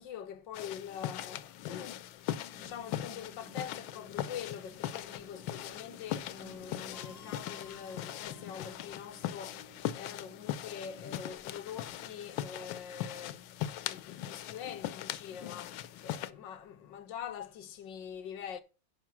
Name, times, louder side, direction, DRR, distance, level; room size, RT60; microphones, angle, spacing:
voice 1, 0.0-2.1 2.6-13.4 13.8-18.6, left 8 dB, 75° left, 1.6 m, -44 dB
sound 1, 0.5-16.3, left 12 dB, 90° left, 1.4 m, -40 dB
sound 2, 2.5-17.1, right 2 dB, 60° right, 2.8 m, -59 dB
sound 3, 6.9-9.3, left 4 dB, 55° left, 0.6 m, -57 dB
11.0 x 5.1 x 5.9 m
omnidirectional pair, 2.1 m